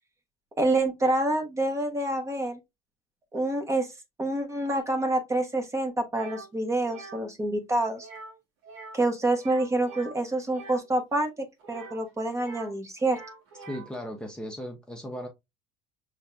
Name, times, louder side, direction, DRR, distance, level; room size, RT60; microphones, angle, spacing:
voice 1, 0.6-2.6 3.3-3.9 4.2-8.1 8.9-13.2, right 2 dB, 20° right, 1.1 m, -27 dB
sound 1, 6.1-6.5 6.8-7.2 8.0-8.4 8.6-9.0 9.3-10.8 11.6-12.7 13.0-14.0, right 3 dB, 90° right, 2.4 m, -45 dB
voice 2, 13.7-15.3, equal, 5° left, 0.8 m, -36 dB
5.4 x 3.5 x 2.3 m
supercardioid pair, 100°, 14 cm